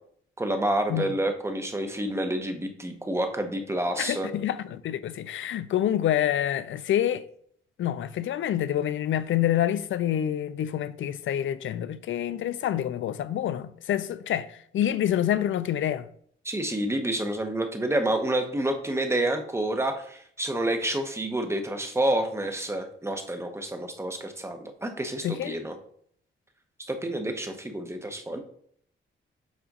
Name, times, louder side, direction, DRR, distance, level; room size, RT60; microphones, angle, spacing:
voice 1, 0.4-4.3 16.4-25.7 26.9-28.4, right 1 dB, 15° right, 0.8 m, -28 dB
voice 2, 4.0-7.3 7.8-16.1 25.2-25.6, left 11 dB, 70° left, 0.5 m, -27 dB
7.2 x 2.5 x 5.2 m
cardioid pair, 115°, 21 cm